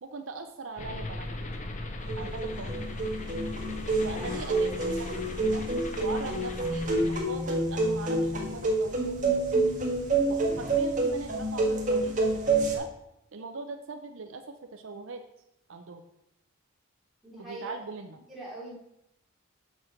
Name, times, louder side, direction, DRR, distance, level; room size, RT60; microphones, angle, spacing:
voice 1, 0.0-1.5 2.2-2.8 4.0-5.7 6.0-9.8 10.3-12.9 13.3-14.4 14.7-15.2 15.7-16.0 17.5-18.2, right 3 dB, 65° right, 6 dB, 0.6 m, -41 dB
sound 1, 0.8-7.2, left 1 dB, 35° left, 0.8 m, -38 dB
sound 2, 2.1-12.7, right 2 dB, 35° right, 1.6 m, -28 dB
voice 2, 3.9-4.5 17.2-17.7 18.3-18.7, right 2 dB, ahead, -8 dB, 3.8 m, -43 dB
6.6 x 6.2 x 5.9 m, 0.83 s
head